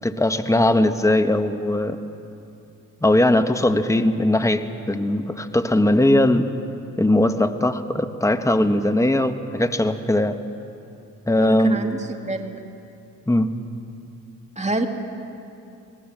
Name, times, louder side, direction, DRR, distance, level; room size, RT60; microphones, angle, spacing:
voice 1, 0.0-2.0 3.0-6.5 7.0-10.4 11.3-11.8 13.3-13.5, left 1 dB, 5° left, 8 dB, 1.5 m, -19 dB
voice 2, 11.4-12.6 14.6-14.9, right 2 dB, 15° right, 4 dB, 2.8 m, -26 dB
26.5 x 18.5 x 7.6 m, 2.7 s
hypercardioid pair, 45°, 43 cm